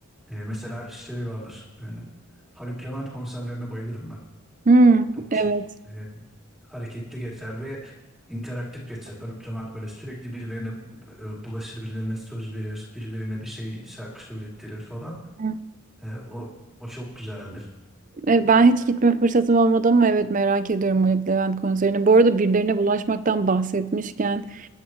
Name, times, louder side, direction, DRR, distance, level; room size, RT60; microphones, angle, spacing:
voice 1, 0.3-2.1 2.5-4.2 5.3-5.4 5.8-6.2 6.7-7.9 8.3-10.8 11.1-15.2 16.0-16.4 16.8-17.7, equal, ahead, -5 dB, 3.1 m, -35 dB
voice 2, 4.7-5.6 15.4-15.6 18.2-24.7, right 3 dB, 35° right, 14 dB, 0.5 m, -19 dB
25.0 x 11.0 x 3.2 m, 1.0 s
head